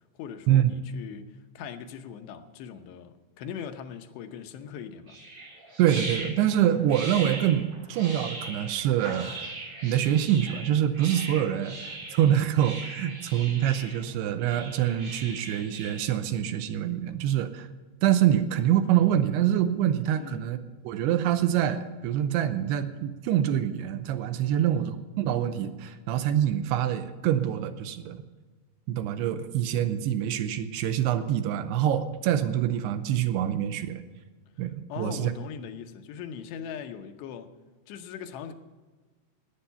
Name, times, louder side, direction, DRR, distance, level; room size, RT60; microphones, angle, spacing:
voice 1, 0.2-5.2 20.2-20.5 24.6-24.8 34.9-37.5 37.9-38.5, left 8 dB, 80° left, 7 dB, 3.0 m, -40 dB
sound 1, 5.1-16.0, right 2 dB, 40° right, 4.6 m, -40 dB
voice 2, 5.8-9.5 9.8-17.7 18.0-20.6 20.9-28.2 28.9-34.0 34.6-35.3, right 11 dB, 80° right, 10 dB, 2.7 m, -25 dB
15.5 x 10.5 x 5.6 m, 1.3 s
omnidirectional pair, 4.9 m